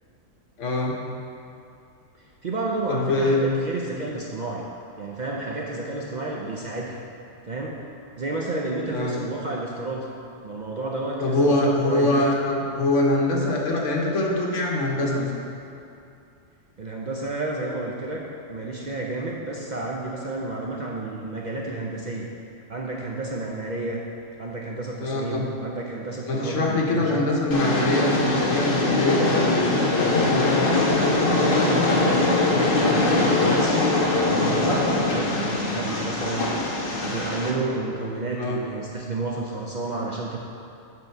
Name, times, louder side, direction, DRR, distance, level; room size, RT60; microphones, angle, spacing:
voice 1, 0.6-0.9 2.9-3.4 8.9-9.2 11.2-15.3 25.0-25.4 26.3-30.7 31.2-31.9 38.4-38.6, left 2 dB, 75° left, -1 dB, 1.4 m, -24 dB
voice 2, 2.2-4.6 5.0-7.0 7.5-7.8 8.2-10.1 10.4-12.2 16.8-22.3 22.7-24.0 24.4-27.3 31.3-33.9 34.2-36.5 37.0-40.4, right 2 dB, 50° right, -2 dB, 0.5 m, -31 dB
Train, 27.5-37.5, left 2 dB, 50° left, 1.1 m, -22 dB
7.8 x 5.3 x 4.5 m, 2.6 s
omnidirectional pair, 1.3 m